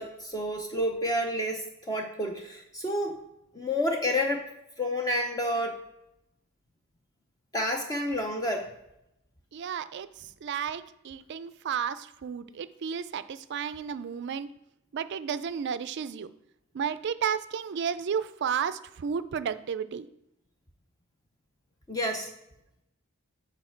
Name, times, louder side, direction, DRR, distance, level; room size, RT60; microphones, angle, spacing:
voice 1, 0.0-3.2 3.5-4.4 4.8-5.8 7.5-8.7 21.9-22.3, left 1 dB, 15° left, 2 dB, 0.6 m, -29 dB
voice 2, 9.5-14.5 14.9-16.3 16.7-20.1, right 7 dB, 50° right, 13 dB, 0.3 m, -32 dB
7.8 x 4.1 x 4.4 m, 0.85 s
head